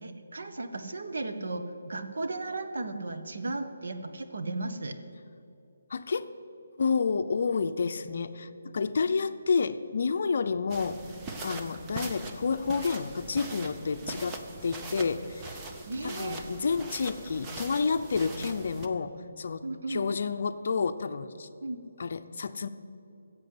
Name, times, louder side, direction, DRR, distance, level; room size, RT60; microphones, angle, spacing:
voice 1, 0.0-5.0 14.0-14.1 15.9-16.4 19.6-20.0 21.6-21.8, right 2 dB, 70° right, 7 dB, 1.3 m, -35 dB
voice 2, 5.9-6.3 6.8-11.0 11.4-15.6 16.0-21.5 22.0-22.7, left 5 dB, 50° left, 10 dB, 0.6 m, -30 dB
sound 1, 10.7-18.9, right 3 dB, 10° right, 0.7 m, -41 dB
15.5 x 7.5 x 7.9 m, 2.8 s
hypercardioid pair, 170°, 0 cm